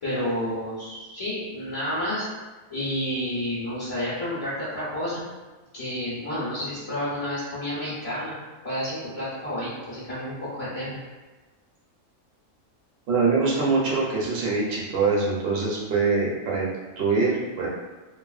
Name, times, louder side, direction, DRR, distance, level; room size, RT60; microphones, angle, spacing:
voice 1, 0.0-2.2 2.7-5.2 5.7-8.3 8.6-11.0, left 1 dB, 30° left, -11 dB, 0.6 m, -30 dB
voice 2, 13.1-16.7 17.0-17.7, right 4 dB, 60° right, -4 dB, 0.8 m, -23 dB
2.9 x 2.4 x 2.4 m, 1.2 s
omnidirectional pair, 1.3 m